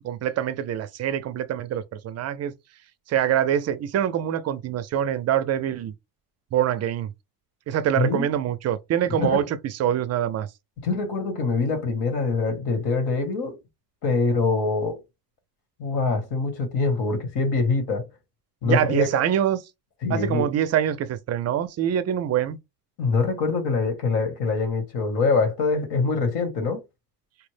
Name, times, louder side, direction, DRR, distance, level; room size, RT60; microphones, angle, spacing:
voice 1, 0.0-2.5 3.1-5.9 6.5-7.1 7.7-10.5 18.6-19.6 20.1-22.6, right 10 dB, 40° right, 0.4 m, -24 dB
voice 2, 7.9-8.3 9.2-9.5 10.8-13.6 14.0-15.0 15.8-18.1 18.6-19.3 20.0-20.5 23.0-26.8, left 4 dB, 70° left, 1.5 m, -24 dB
4.4 x 2.0 x 3.2 m
cardioid pair, 160°, 41 cm